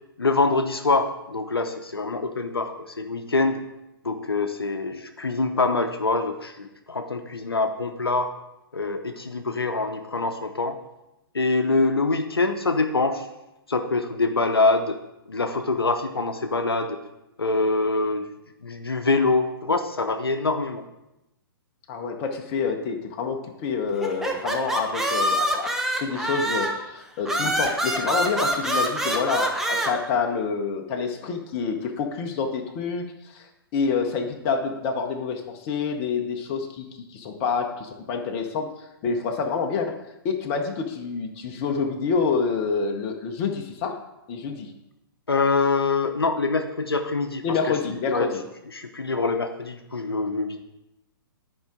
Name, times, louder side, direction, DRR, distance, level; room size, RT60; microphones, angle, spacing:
voice 1, 0.2-3.6 4.0-8.3 8.7-10.8 11.3-13.3 13.7-15.0 15.3-17.0 17.4-20.8 45.3-47.6 47.9-48.3 48.7-50.6, left 3 dB, 75° left, 6 dB, 0.7 m, -24 dB
voice 2, 21.9-25.7 26.0-40.0 40.2-44.0 44.3-44.7 47.4-48.4, left 5 dB, 30° left, 4 dB, 0.8 m, -27 dB
sound 1, 24.0-26.8 27.3-29.9, right 1 dB, 5° right, 0.6 m, -25 dB
10.5 x 4.8 x 3.7 m, 0.91 s
figure-of-eight pair, 120°, 13 cm